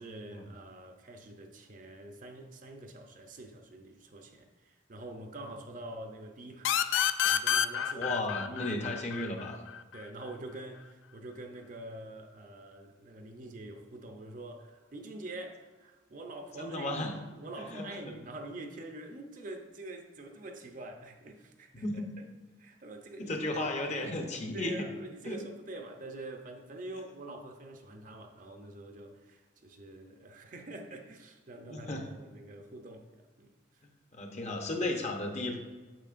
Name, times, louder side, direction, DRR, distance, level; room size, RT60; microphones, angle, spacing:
voice 1, 0.0-6.9 7.3-8.1 8.5-8.7 9.9-22.3 22.6-23.4 24.5-33.8, right 2 dB, 45° right, 0.6 m, -46 dB
sound 1, 6.6-10.0, left 9 dB, 80° left, 0.3 m, -29 dB
voice 2, 7.9-9.6 16.6-17.1 17.7-18.1 21.7-22.1 23.2-24.8 25.2-25.4 31.7-32.0 33.8-35.6, left 2 dB, 40° left, 0.8 m, -34 dB
8.9 x 6.3 x 2.5 m
head